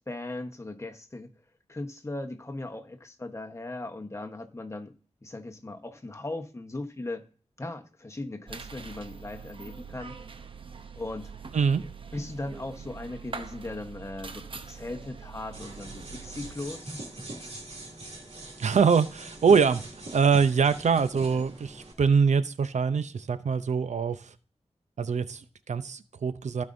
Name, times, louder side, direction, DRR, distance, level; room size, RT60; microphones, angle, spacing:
voice 1, 0.1-1.3 1.7-4.9 5.2-7.3 7.6-10.2 11.0-11.3 12.1-17.0, left 2 dB, 25° left, 1.1 m, -38 dB
sound 1, 8.5-16.6, right 5 dB, 50° right, 0.8 m, -43 dB
sound 2, 15.5-21.9, right 2 dB, 65° right, 2.7 m, -42 dB
voice 2, 18.6-19.8 20.1-24.2 25.0-26.6, right 6 dB, 85° right, 0.6 m, -24 dB
15.5 x 5.3 x 2.6 m
wide cardioid pair, 85°, 12 cm